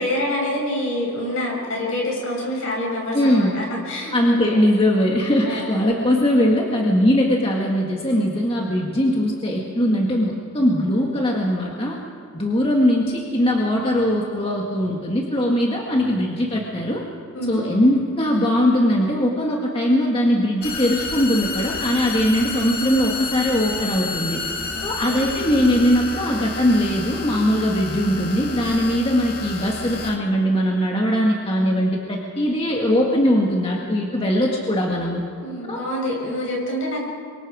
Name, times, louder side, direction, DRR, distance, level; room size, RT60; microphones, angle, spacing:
voice 1, 0.0-4.6 5.4-5.7 17.3-17.6 24.7-25.3 35.4-37.0, left 1 dB, 65° left, -2 dB, 7.3 m, -27 dB
voice 2, 3.1-3.6 4.1-12.0 12.3-17.0 17.5-24.4 24.8-35.2 35.7-35.8, equal, 25° left, -1 dB, 1.9 m, -20 dB
sound 1, 20.6-30.2, left 3 dB, 45° left, 1.7 m, -30 dB
27.5 x 24.0 x 5.1 m, 2.3 s
head